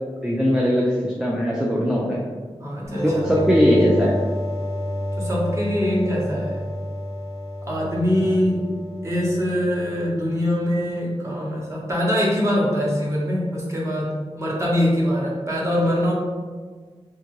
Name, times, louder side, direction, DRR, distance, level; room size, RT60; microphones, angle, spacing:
voice 1, 0.2-2.2 3.0-4.1, equal, 5° right, -5 dB, 0.3 m, -20 dB
voice 2, 2.6-3.7 5.2-6.6 7.6-8.7 9.0-16.1, equal, 25° right, -5 dB, 0.8 m, -23 dB
sound 1, 2.9-10.3, equal, 80° right, 1.1 m, -30 dB
2.8 x 2.4 x 2.9 m, 1.5 s
wide cardioid pair, 100°, 11 cm